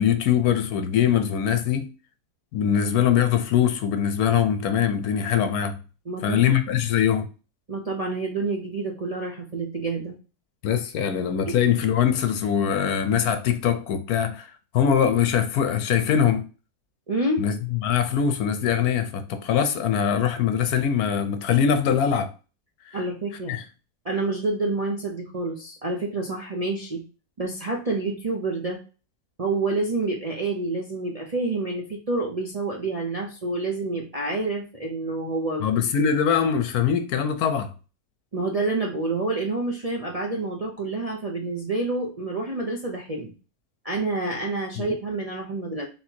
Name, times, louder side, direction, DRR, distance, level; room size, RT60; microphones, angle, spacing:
voice 1, 0.0-1.9 2.5-5.8 6.2-7.3 10.6-14.5 14.7-16.4 17.4-22.3 23.5-23.6 35.6-37.7 44.8-44.9, left 8 dB, 70° left, 1.1 m, -22 dB
voice 2, 6.1-6.4 7.7-10.1 17.1-17.4 22.9-23.6 24.0-27.0 27.4-28.8 29.4-35.7 38.3-43.3 43.8-45.9, right 3 dB, 40° right, 0.5 m, -28 dB
4.3 x 3.7 x 2.8 m
omnidirectional pair, 1.7 m